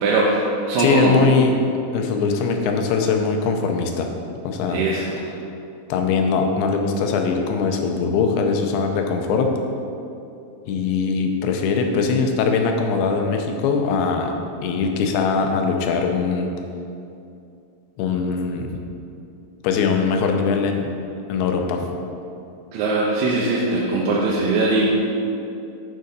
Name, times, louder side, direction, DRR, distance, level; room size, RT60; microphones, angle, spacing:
voice 1, 0.0-1.2 4.7-5.1 22.7-24.9, right 2 dB, 80° right, -4 dB, 2.2 m, -20 dB
voice 2, 0.8-1.6 1.9-4.1 4.4-4.8 5.9-9.5 10.7-14.3 14.6-16.5 18.0-18.7 19.6-20.9 21.3-21.9, left 5 dB, 85° left, 4 dB, 2.6 m, -21 dB
9.5 x 3.8 x 5.4 m, 2.6 s
omnidirectional pair, 4.5 m